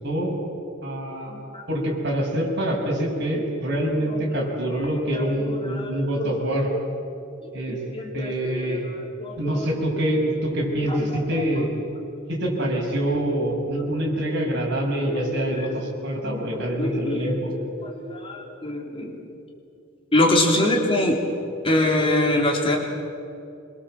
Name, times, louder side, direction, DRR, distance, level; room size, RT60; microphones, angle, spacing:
voice 1, 0.0-0.4 0.8-1.4 1.7-6.7 7.5-7.8 8.1-8.8 9.4-11.7 12.3-17.5, right 1 dB, 60° right, -1 dB, 6.3 m, -25 dB
voice 2, 1.3-1.6 3.8-4.4 5.1-5.9 6.2-6.5 7.4-8.8 9.2-9.7 14.7-14.8 15.1-15.7 16.2-19.2 20.1-21.2 21.6-22.8, left 1 dB, 30° left, 0 dB, 3.3 m, -25 dB
25.5 x 22.5 x 7.6 m, 2.7 s
head